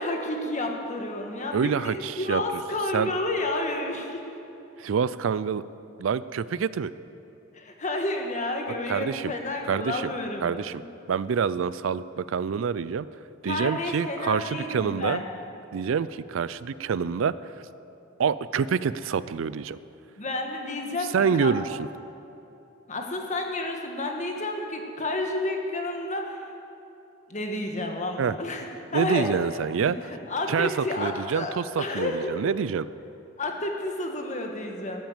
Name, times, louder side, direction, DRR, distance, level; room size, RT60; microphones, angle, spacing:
voice 1, 0.0-4.2 7.5-10.9 13.4-15.2 20.2-21.5 22.9-26.4 27.3-28.7 28.9-29.3 29.8-32.3 33.4-35.0, left 2 dB, 40° left, 2 dB, 1.5 m, -30 dB
voice 2, 1.5-2.4 2.9-3.1 4.8-5.6 6.0-6.9 8.9-9.3 9.7-10.1 10.4-10.8 11.1-13.1 13.4-15.2 15.7-17.3 18.2-19.8 21.1-21.9 28.2-28.3 28.9-30.0 30.5-30.7 31.0-32.9, right 6 dB, 75° right, 16 dB, 0.4 m, -26 dB
13.5 x 9.1 x 7.2 m, 2.9 s
head